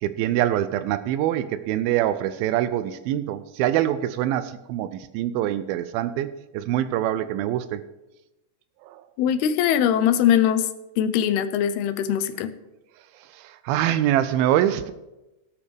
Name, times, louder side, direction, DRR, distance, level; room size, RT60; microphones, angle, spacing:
voice 1, 0.0-7.8 8.8-9.0 13.3-14.9, right 12 dB, 80° right, 13 dB, 2.3 m, -24 dB
voice 2, 9.2-10.7 11.0-12.5, left 9 dB, 90° left, 12 dB, 2.7 m, -21 dB
18.0 x 8.7 x 3.4 m, 1.0 s
omnidirectional pair, 4.4 m